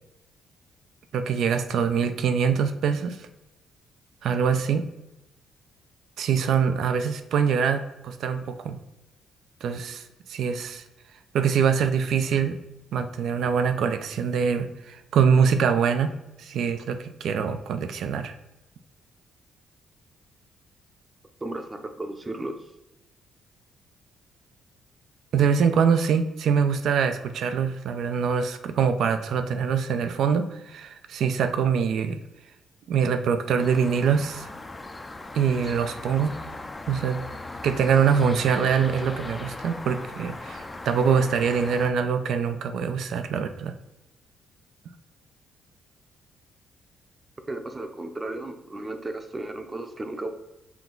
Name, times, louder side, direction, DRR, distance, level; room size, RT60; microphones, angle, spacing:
voice 1, 1.1-3.3 4.2-4.8 6.2-8.8 9.6-10.8 11.3-12.6 12.9-16.1 16.4-18.4 25.3-32.2 32.9-34.5 35.3-36.3 36.9-37.2 37.6-43.7, right 6 dB, 70° right, 9 dB, 0.4 m, -24 dB
voice 2, 21.4-22.7 47.5-50.3, right 2 dB, 25° right, 7 dB, 0.6 m, -34 dB
sound 1, 33.6-41.9, left 2 dB, 20° left, 0.4 m, -38 dB
5.8 x 2.3 x 3.7 m, 0.94 s
cardioid pair, 90°, 0 cm